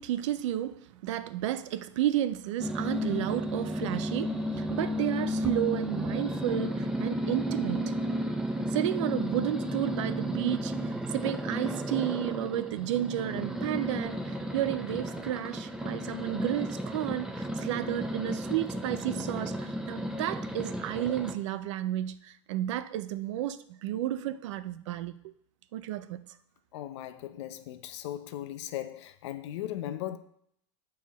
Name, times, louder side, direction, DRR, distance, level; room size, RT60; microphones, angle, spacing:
voice 1, 0.0-7.9 8.7-25.3 25.7-26.2, right 12 dB, 75° right, 0.5 m, -32 dB
sound 1, 2.6-21.3, equal, 5° right, 0.5 m, -33 dB
voice 2, 26.7-30.2, left 12 dB, 65° left, 0.6 m, -38 dB
7.2 x 4.6 x 4.6 m
supercardioid pair, 150°, 16 cm